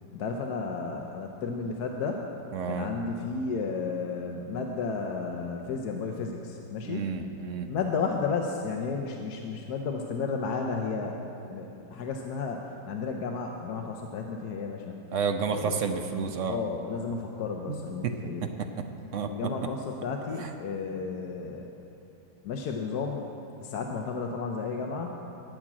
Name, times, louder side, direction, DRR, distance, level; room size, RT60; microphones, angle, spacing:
voice 1, 0.1-2.2 2.7-7.1 7.7-11.2 11.5-15.0 15.5-15.7 16.4-18.5 19.2-21.7 22.4-23.3 23.6-25.4, left 4 dB, 70° left, 2 dB, 1.2 m, -33 dB
voice 2, 2.5-2.9 6.9-7.7 15.1-16.6 17.7-17.8 18.0-18.1 18.4-18.7 19.1-19.3 20.4-20.5, right 6 dB, 65° right, 6 dB, 0.8 m, -30 dB
12.5 x 6.1 x 8.7 m, 2.8 s
omnidirectional pair, 1.9 m